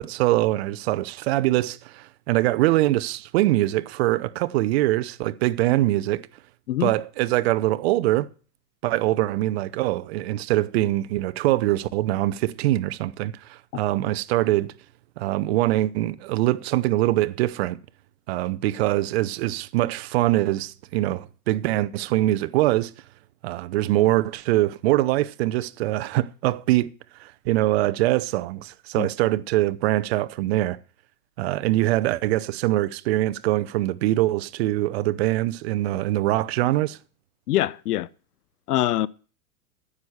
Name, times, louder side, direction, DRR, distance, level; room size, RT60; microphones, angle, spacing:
voice 1, 0.0-6.3 6.8-8.3 8.8-14.7 15.2-17.8 18.3-22.9 23.4-26.9 27.2-30.8 31.4-37.0, right 16 dB, 45° right, 0.6 m, -23 dB
voice 2, 37.5-38.1 38.7-39.1, left 14 dB, 75° left, 0.7 m, -24 dB
9.7 x 7.9 x 7.1 m
hypercardioid pair, 135°, 46 cm